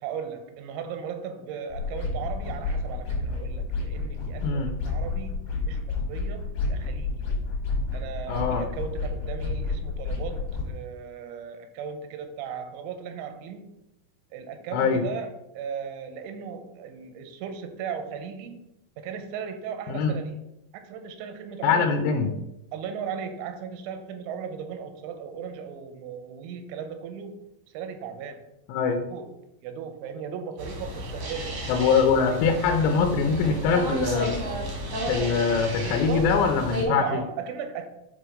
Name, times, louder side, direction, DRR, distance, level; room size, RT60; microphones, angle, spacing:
voice 1, 0.0-7.2 7.9-13.7 14.3-18.6 19.0-20.4 20.7-21.9 22.7-27.5 27.7-28.4 29.1-29.3 29.6-32.0 35.2-35.4 35.8-36.4 36.8-37.9, right 7 dB, 85° right, 7 dB, 3.1 m, -37 dB
sound 1, 1.7-10.7, left 3 dB, 60° left, 2.8 m, -30 dB
voice 2, 4.4-4.7 8.3-8.6 14.7-15.1 19.9-20.1 21.6-22.3 28.7-29.1 31.7-34.4 35.1-37.2, left 5 dB, 80° left, 4 dB, 2.8 m, -23 dB
sound 2, 30.6-36.8, equal, 70° right, 1.4 m, -32 dB
7.6 x 2.9 x 4.9 m, 0.87 s
omnidirectional pair, 5.3 m